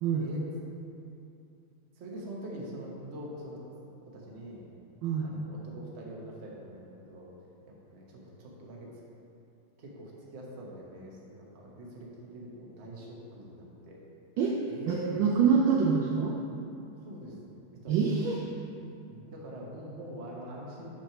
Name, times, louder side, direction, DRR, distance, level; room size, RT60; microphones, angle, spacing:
voice 1, 2.0-3.6 4.1-4.7 5.2-7.3 7.7-8.9 9.8-14.0 14.7-15.3 17.1-18.0 19.1-20.9, right 1 dB, 40° right, -3 dB, 1.0 m, -43 dB
voice 2, 5.0-5.3 14.4-14.6 14.9-16.4 17.9-18.4, right 6 dB, 75° right, -2 dB, 1.2 m, -26 dB
6.0 x 4.3 x 5.9 m, 2.7 s
omnidirectional pair, 2.4 m